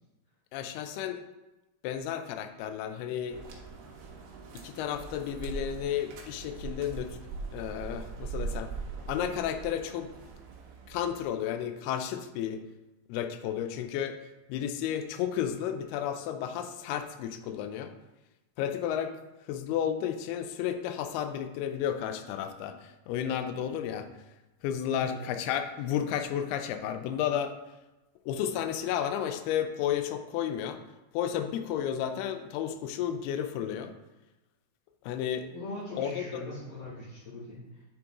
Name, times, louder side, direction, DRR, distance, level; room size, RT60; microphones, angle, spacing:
voice 1, 0.5-1.2 1.8-3.4 4.6-7.2 7.5-8.7 9.1-10.1 10.9-12.6 13.1-14.2 14.5-17.9 18.6-19.1 19.5-24.1 24.6-27.5 28.3-30.8 31.1-33.9 35.0-35.5 36.0-36.4, left 9 dB, 85° left, 8 dB, 2.6 m, -32 dB
sound 1, 3.3-11.2, right 5 dB, 90° right, 2.9 m, -41 dB
voice 2, 35.5-37.8, left 2 dB, 65° left, -9 dB, 3.3 m, -41 dB
8.7 x 3.8 x 3.6 m, 1.0 s
omnidirectional pair, 4.5 m